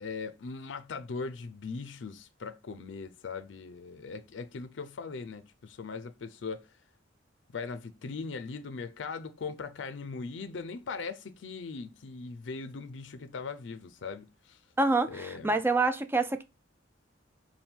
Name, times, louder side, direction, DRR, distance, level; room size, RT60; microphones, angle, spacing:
voice 1, 0.0-6.7 7.5-14.6 15.1-15.6, left 4 dB, 70° left, 0.5 m, -40 dB
voice 2, 14.8-16.4, right 3 dB, 10° right, 0.3 m, -26 dB
4.3 x 2.2 x 3.5 m
head